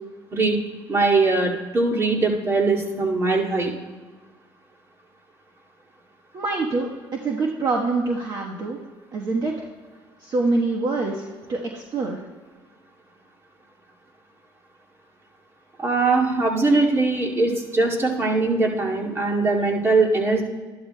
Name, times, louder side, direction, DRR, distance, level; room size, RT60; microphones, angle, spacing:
voice 1, 0.9-3.7 15.8-20.4, right 3 dB, 30° right, -2 dB, 2.2 m, -21 dB
voice 2, 6.3-8.8 9.1-9.7 10.2-12.2, right 3 dB, 50° right, -1 dB, 1.2 m, -25 dB
12.5 x 11.5 x 2.2 m, 1.4 s
cardioid pair, 95°, 9 cm